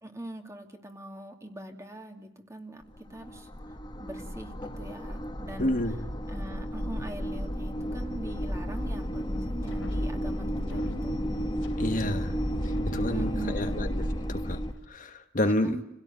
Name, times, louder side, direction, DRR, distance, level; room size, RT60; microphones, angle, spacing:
voice 1, 0.0-3.5 4.0-5.8 6.3-11.2 13.1-13.9 15.4-15.8, right 1 dB, 15° right, 4 dB, 2.7 m, -42 dB
sound 1, 2.8-14.7, equal, 20° left, 1.9 m, -32 dB
voice 2, 5.6-6.0 11.8-12.3 12.9-14.0 14.3-14.6 14.9-15.8, left 1 dB, 40° left, 6 dB, 1.4 m, -29 dB
Wind, 9.2-14.8, left 1 dB, 80° left, 3.4 m, -44 dB
29.5 x 17.0 x 9.5 m, 0.87 s
head